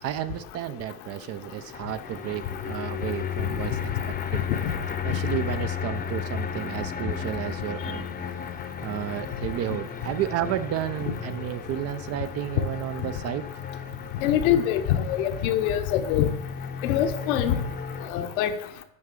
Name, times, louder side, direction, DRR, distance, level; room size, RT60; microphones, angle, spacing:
voice 1, 0.0-4.4 5.0-8.1 8.8-13.5, right 11 dB, 35° right, 13 dB, 0.4 m, -32 dB
sound 1, 1.3-18.1, left 7 dB, 20° left, 0.7 m, -34 dB
voice 2, 14.2-16.3 16.8-17.6 18.1-18.6, left 10 dB, 70° left, 9 dB, 0.9 m, -24 dB
9.6 x 3.6 x 4.9 m, 0.78 s
hypercardioid pair, 90°, 45 cm